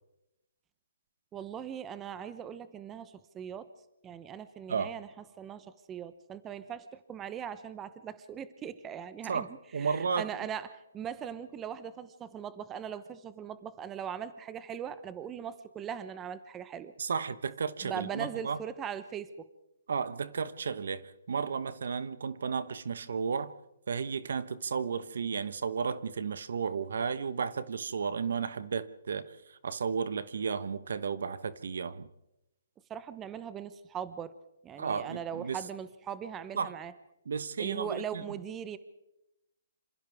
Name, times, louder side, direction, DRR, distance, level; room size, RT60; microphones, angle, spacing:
voice 1, 1.3-3.7 4.0-5.1 5.4-9.5 9.7-16.9 17.8-19.5 32.9-34.3 34.6-36.9 37.6-38.8, right 8 dB, 15° right, 0.8 m, -40 dB
voice 2, 9.7-10.3 17.0-18.6 19.9-23.5 23.9-29.3 29.6-32.1 34.8-35.6 36.6-36.7 37.3-38.2, right 6 dB, 70° right, 1.1 m, -33 dB
27.0 x 27.0 x 3.6 m
hypercardioid pair, 155°, 0 cm